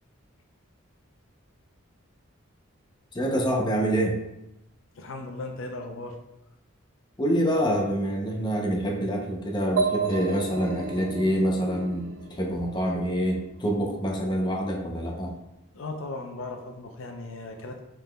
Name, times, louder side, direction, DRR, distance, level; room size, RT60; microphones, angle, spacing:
voice 1, 3.1-4.2 7.2-15.3, equal, 20° left, 0 dB, 0.5 m, -26 dB
voice 2, 4.9-6.2 15.7-17.8, left 2 dB, 65° left, 3 dB, 0.5 m, -37 dB
sound 1, 9.8-13.4, right 4 dB, 70° right, 0.5 m, -32 dB
5.5 x 3.7 x 2.2 m, 0.85 s
head